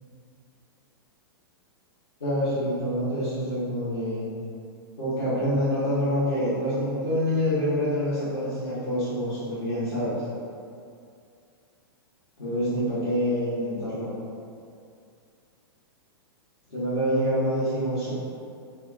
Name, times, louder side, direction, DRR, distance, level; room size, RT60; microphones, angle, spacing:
voice 1, 2.2-4.3 5.0-10.2 12.4-14.1 16.7-18.1, equal, 85° left, -14 dB, 0.9 m, -26 dB
2.8 x 2.2 x 2.4 m, 2.4 s
hypercardioid pair, 110°, 13 cm